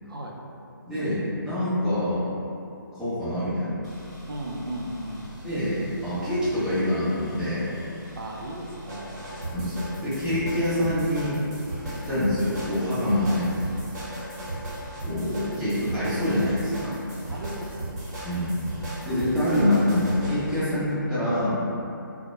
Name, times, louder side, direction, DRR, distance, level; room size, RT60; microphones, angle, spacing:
voice 1, 0.0-0.4 4.3-5.2 8.2-9.2 13.2-13.4 17.3-18.0, right 1 dB, 90° right, -1 dB, 0.4 m, -36 dB
voice 2, 0.9-2.2 2.9-3.8 5.4-7.6 9.5-11.4 11.9-13.4 15.0-16.9 18.2-18.5 19.1-21.6, left 1 dB, ahead, -17 dB, 0.6 m, -25 dB
sound 1, 3.8-20.6, right 1 dB, 50° right, 1.0 m, -37 dB
2.1 x 2.0 x 2.9 m, 2.7 s
figure-of-eight pair, 150°, 11 cm